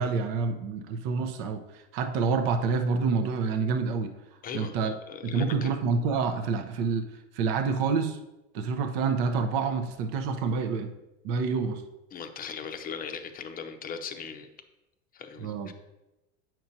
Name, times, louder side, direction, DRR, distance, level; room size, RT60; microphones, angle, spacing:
voice 1, 0.0-4.1 4.5-5.0 5.2-8.2 8.5-10.9 11.2-11.8 15.4-15.7, right 5 dB, 55° right, 6 dB, 0.8 m, -28 dB
voice 2, 4.4-5.7 12.1-14.5 15.1-15.7, left 6 dB, 25° left, 6 dB, 0.6 m, -39 dB
8.4 x 6.0 x 2.7 m, 0.98 s
supercardioid pair, 120°, 37 cm